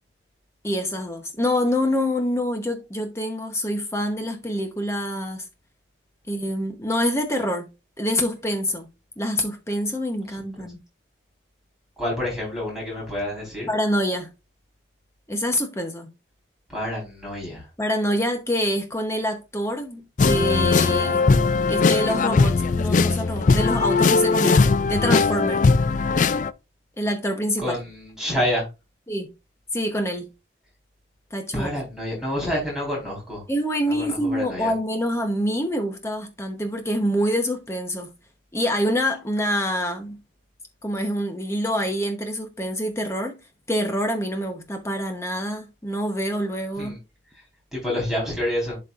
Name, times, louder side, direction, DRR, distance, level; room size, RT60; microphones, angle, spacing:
voice 1, 0.6-5.5 6.3-7.7 8.0-8.9 9.2-10.8 13.7-14.3 15.3-16.1 17.8-21.2 21.7-25.6 27.0-27.8 29.1-29.3 29.7-30.3 31.3-31.8 33.5-38.1 38.5-40.2 40.8-43.4 43.7-47.0, equal, 15° left, 0.9 m, -26 dB
voice 2, 12.0-13.7 16.7-17.6 27.6-28.7 31.5-33.4 33.9-34.7 46.8-47.0 47.7-48.8, left 1 dB, ahead, 4.2 m, -28 dB
sound 1, 20.2-26.5, left 4 dB, 40° left, 0.3 m, -19 dB
11.5 x 4.3 x 2.5 m
head